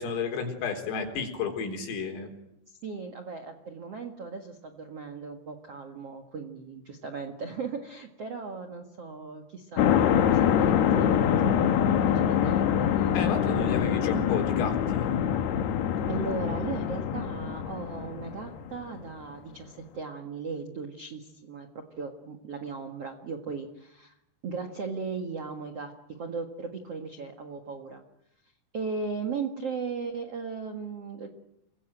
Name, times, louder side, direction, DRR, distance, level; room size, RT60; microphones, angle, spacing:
voice 1, 0.0-2.3 13.1-15.2, left 5 dB, 90° left, 5 dB, 6.7 m, -32 dB
voice 2, 2.8-13.1 16.0-24.1 24.4-28.0 28.7-31.3, right 5 dB, 65° right, 5 dB, 1.4 m, -37 dB
sound 1, 9.8-18.8, left 9 dB, 65° left, 3.2 m, -25 dB
28.0 x 22.5 x 9.1 m, 0.82 s
omnidirectional pair, 5.7 m